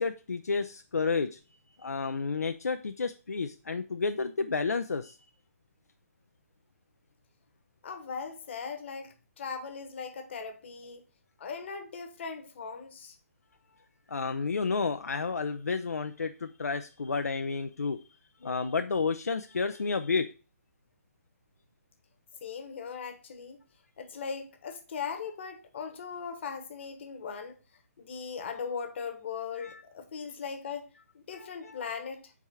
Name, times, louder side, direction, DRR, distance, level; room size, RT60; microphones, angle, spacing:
voice 1, 0.0-1.4 1.8-5.1 14.1-18.0 18.4-20.3 29.6-29.8 31.3-31.9, left 4 dB, 75° left, 0.5 m, -31 dB
voice 2, 7.8-11.0 11.4-13.2 22.4-23.6 24.0-27.6 28.0-30.9 31.1-32.3, left 6 dB, 45° left, 1.1 m, -39 dB
4.8 x 3.5 x 5.5 m
figure-of-eight pair, 140°, 8 cm